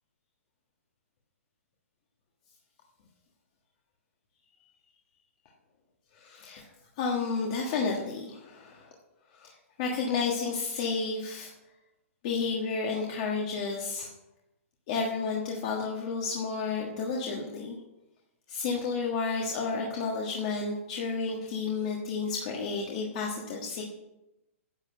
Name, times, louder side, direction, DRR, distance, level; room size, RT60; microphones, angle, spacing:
voice 1, 6.1-6.7 7.0-8.9 9.3-11.5 12.2-14.1 14.9-17.8 18.5-23.8, left 4 dB, 25° left, -1 dB, 1.5 m, -31 dB
10.5 x 8.2 x 7.8 m, 0.92 s
hypercardioid pair, 180°, 8 cm